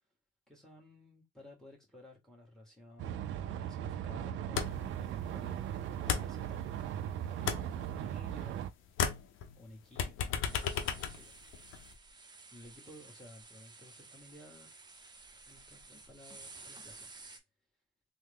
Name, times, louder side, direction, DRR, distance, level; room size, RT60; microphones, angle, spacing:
voice 1, 0.5-6.7 7.2-8.7 9.5-11.4 12.5-14.8 15.5-17.1, left 1 dB, ahead, 1.7 m, -55 dB
sound 1, 3.0-8.7, right 10 dB, 75° right, 0.4 m, -38 dB
sound 2, 4.6-5.0 5.2-7.0 7.3-8.6 8.9-11.9, left 7 dB, 80° left, 0.6 m, -35 dB
sound 3, 10.4-17.4, right 3 dB, 20° right, 0.7 m, -53 dB
3.3 x 2.1 x 3.4 m
cardioid pair, 90°, 20 cm